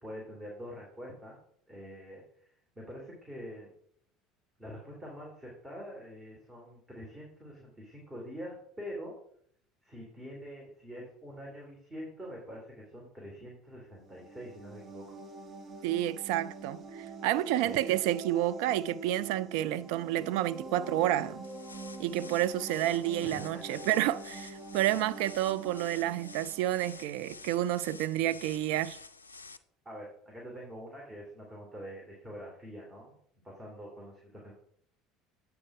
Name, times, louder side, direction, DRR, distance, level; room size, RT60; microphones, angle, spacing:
voice 1, 0.0-1.4 1.7-2.2 2.8-3.7 4.6-9.1 9.8-15.1 17.6-18.0 23.2-23.8 29.8-33.2 33.4-34.5, equal, 20° right, 2.6 m, -45 dB
sound 1, 14.0-27.6, right 3 dB, 40° right, 1.1 m, -45 dB
voice 2, 15.8-16.8 17.2-21.5 22.0-29.0, right 13 dB, 65° right, 0.3 m, -30 dB
sound 2, 21.4-29.6, left 4 dB, 90° left, 0.3 m, -50 dB
8.6 x 4.7 x 4.8 m
figure-of-eight pair, 65°, 0 cm